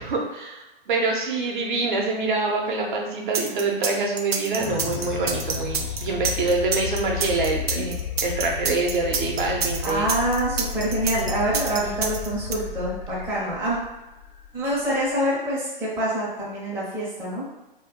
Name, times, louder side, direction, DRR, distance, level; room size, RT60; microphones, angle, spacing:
voice 1, 0.0-7.9 8.2-10.1, right 3 dB, 55° right, 0 dB, 0.7 m, -25 dB
sound 1, 3.3-12.5, right 6 dB, 90° right, 0.5 m, -27 dB
sound 2, 4.6-15.3, left 7 dB, 50° left, 0.4 m, -33 dB
voice 2, 9.8-13.8 14.5-17.4, right 1 dB, 10° right, -7 dB, 0.5 m, -26 dB
2.2 x 2.2 x 3.6 m, 1.0 s
hypercardioid pair, 130°, 30 cm